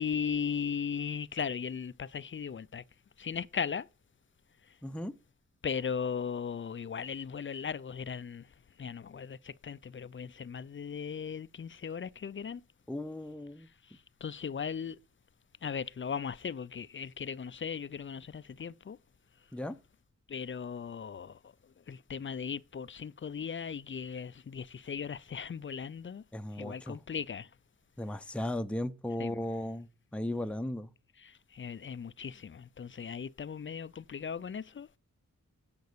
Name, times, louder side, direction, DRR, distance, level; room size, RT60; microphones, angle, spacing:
voice 1, 0.0-2.8 3.2-3.9 5.6-8.5 8.8-12.6 13.9-15.0 15.6-19.0 20.3-21.5 21.9-26.2 26.5-27.5 29.2-29.4 31.2-34.9, left 7 dB, 40° left, 0.4 m, -37 dB
voice 2, 4.8-5.1 12.9-13.7 19.5-19.8 26.3-27.0 28.0-30.9, left 1 dB, 5° left, 0.7 m, -36 dB
9.3 x 5.3 x 6.7 m
cardioid pair, 45°, 32 cm